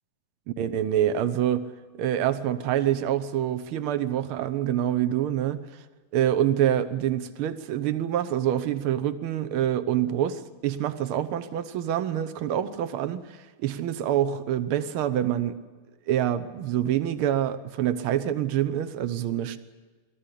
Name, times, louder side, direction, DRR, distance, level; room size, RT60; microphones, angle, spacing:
voice 1, 0.6-1.7 2.0-5.6 6.1-15.6 16.1-19.6, right 11 dB, 75° right, 11 dB, 1.8 m, -26 dB
22.0 x 14.5 x 9.9 m, 1.4 s
omnidirectional pair, 2.4 m